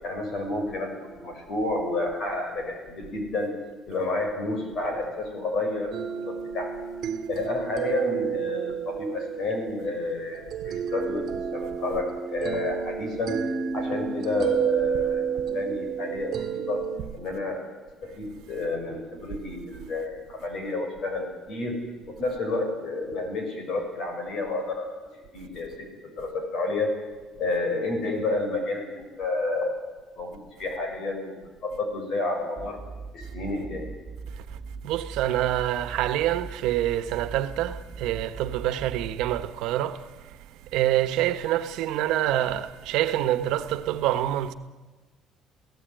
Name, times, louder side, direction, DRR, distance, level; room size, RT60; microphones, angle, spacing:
voice 1, 0.0-3.6 3.9-6.7 7.3-13.4 13.7-16.8 17.1-17.7 18.0-21.8 22.1-26.9 27.4-29.9 30.1-32.8 33.1-33.9, left 2 dB, 45° left, 6.5 m, -30 dB
sound 1, 5.9-17.0, right 7 dB, 45° right, 2.0 m, -30 dB
sound 2, 32.6-39.4, right 4 dB, 10° right, 4.7 m, -40 dB
voice 2, 34.8-40.0 40.7-44.5, right 13 dB, 80° right, 1.3 m, -26 dB
28.5 x 17.0 x 9.2 m
cardioid pair, 180°, 0 cm